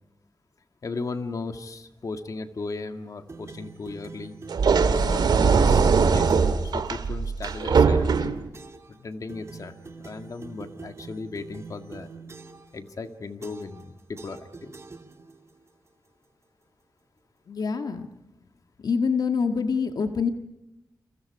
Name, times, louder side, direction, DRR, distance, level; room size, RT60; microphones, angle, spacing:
voice 1, 0.8-4.4 4.9-8.3 8.9-12.1 12.7-14.8, left 3 dB, 50° left, 7 dB, 1.9 m, -36 dB
sound 1, 3.3-6.7 7.4-7.8 8.5-8.9 9.3-12.7 13.4-13.9 14.2-15.5, right 4 dB, 40° right, 2.4 m, -44 dB
sound 2, 4.5-8.5, right 5 dB, 85° right, 1.9 m, -21 dB
voice 2, 17.5-18.1 18.8-20.3, left 5 dB, 70° left, 6 dB, 1.7 m, -25 dB
29.5 x 28.5 x 4.8 m, 0.88 s
wide cardioid pair, 105°, 7 cm